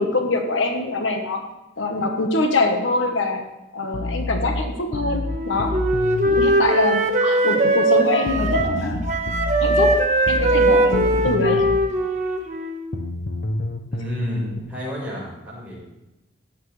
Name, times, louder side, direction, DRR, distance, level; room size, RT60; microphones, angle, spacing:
voice 1, 0.0-1.5 1.8-3.4 3.7-5.8 6.2-9.1 9.6-10.0 10.3-11.7, left 2 dB, 85° left, 4 dB, 1.3 m, -23 dB
sound 1, 3.9-6.5 8.3-11.9 12.9-14.6, left 2 dB, 65° left, 0.8 m, -28 dB
Wind instrument woodwind instrument, 5.2-8.8 9.1-12.9, right 1 dB, 35° right, 1.3 m, -20 dB
voice 2, 13.9-15.7, equal, 10° right, -7 dB, 4.9 m, -31 dB
14.5 x 9.6 x 3.3 m, 0.99 s
head